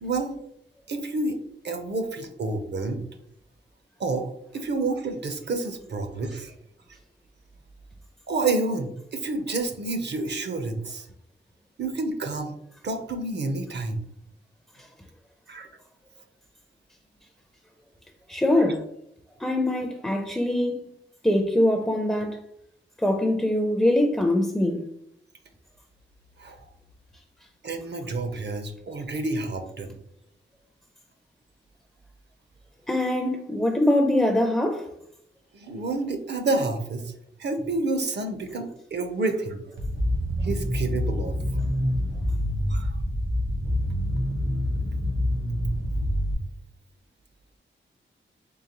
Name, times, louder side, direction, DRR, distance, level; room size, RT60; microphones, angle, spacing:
voice 1, 0.0-0.4 0.9-1.4 1.6-3.0 4.0-6.5 8.3-11.1 11.8-12.5 12.8-14.0 15.5-15.7 26.4-26.7 27.6-30.0 35.5-37.1 37.4-39.6 40.4-41.6 42.7-43.0, right 3 dB, 60° right, 0.6 m, -29 dB
voice 2, 18.3-18.8 19.4-20.9 21.2-22.4 23.0-24.8 32.9-34.9, left 1 dB, 5° left, 0.4 m, -23 dB
sound 1, 39.8-46.3, left 1 dB, 75° right, 1.2 m, -26 dB
3.8 x 3.2 x 2.8 m
wide cardioid pair, 105°, 20 cm